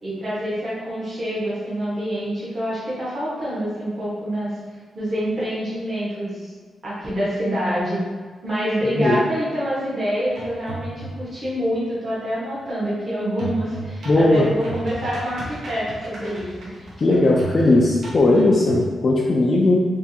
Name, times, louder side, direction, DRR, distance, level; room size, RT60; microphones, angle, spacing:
voice 1, 0.0-4.5 4.9-6.5 6.8-8.0 8.4-16.7, equal, 40° right, -9 dB, 1.3 m, -26 dB
voice 2, 8.9-9.2 14.1-14.5 17.0-19.8, left 2 dB, 40° left, -3 dB, 0.4 m, -17 dB
sound 1, 10.3-11.4 13.4-18.9, right 1 dB, 80° right, 1.1 m, -34 dB
3.4 x 3.1 x 2.8 m, 1.5 s
wide cardioid pair, 130°, 0 cm